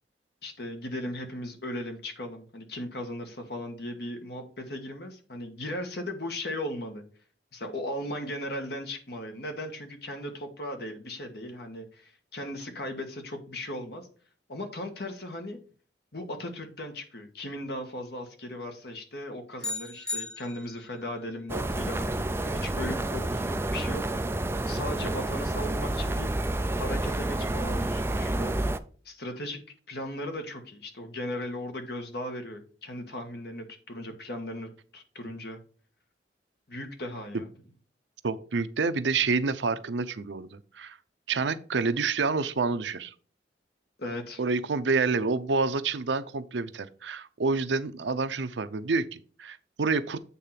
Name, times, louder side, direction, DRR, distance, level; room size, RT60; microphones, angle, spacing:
voice 1, 0.4-7.0 7.5-14.1 14.5-15.6 16.1-24.1 24.7-26.3 26.8-28.5 29.0-29.6 29.9-35.6 36.7-37.5 44.0-44.4, left 1 dB, 60° left, 1.6 m, -37 dB
sound 1, 19.6-21.0, left 3 dB, 5° left, 0.7 m, -36 dB
sound 2, 21.5-28.8, right 1 dB, 15° right, 0.4 m, -29 dB
voice 2, 38.2-41.0 41.3-43.1 44.4-50.2, right 4 dB, 85° right, 0.6 m, -28 dB
8.5 x 3.7 x 5.8 m
head